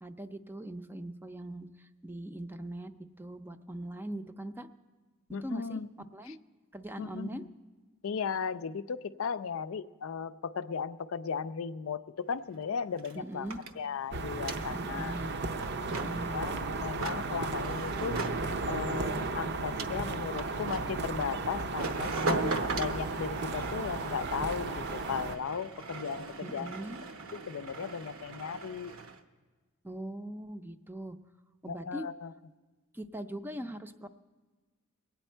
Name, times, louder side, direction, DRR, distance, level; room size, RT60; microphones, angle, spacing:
voice 1, 0.0-2.9 3.2-4.7 5.4-5.8 6.1-6.4 6.7-7.4 13.2-13.6 14.7-15.4 15.9-16.4 26.4-27.0 29.8-31.2 31.6-32.1 32.9-34.1, right 1 dB, 10° right, 9 dB, 0.5 m, -40 dB
voice 2, 5.3-5.9 6.3-6.4 7.0-7.4 8.0-15.2 16.3-18.2 18.7-26.7 27.5-28.9 31.7-32.3, left 6 dB, 75° left, 12 dB, 0.4 m, -36 dB
sound 1, 12.3-12.4 12.6-29.2, right 3 dB, 80° right, 0.9 m, -40 dB
sound 2, 14.1-25.4, right 3 dB, 55° right, 0.6 m, -34 dB
22.5 x 9.2 x 4.4 m, 1.4 s
head